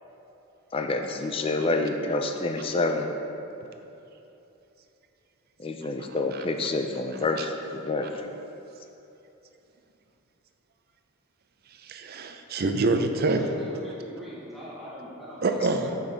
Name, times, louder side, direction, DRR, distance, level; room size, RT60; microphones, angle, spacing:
voice 1, 0.7-3.2 5.6-8.3, left 3 dB, 25° left, 4 dB, 0.3 m, -28 dB
voice 2, 11.8-13.4 15.4-15.9, right 3 dB, 45° right, 6 dB, 0.4 m, -26 dB
voice 3, 13.1-16.0, equal, ahead, -9 dB, 0.9 m, -42 dB
6.8 x 5.8 x 3.9 m, 2.9 s
head